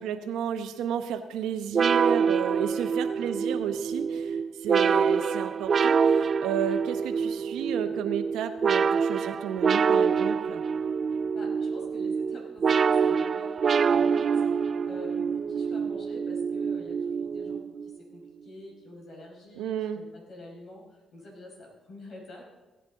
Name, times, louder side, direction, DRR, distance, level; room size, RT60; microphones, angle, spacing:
voice 1, 0.0-10.6 19.6-20.0, right 9 dB, 90° right, 8 dB, 0.9 m, -32 dB
sound 1, 1.7-18.0, right 6 dB, 45° right, 0.3 m, -26 dB
voice 2, 3.0-3.4 11.3-14.3 14.5-22.4, left 1 dB, 55° left, -1 dB, 5.0 m, -47 dB
16.0 x 10.5 x 3.9 m, 1.2 s
cardioid pair, 90°, 0 cm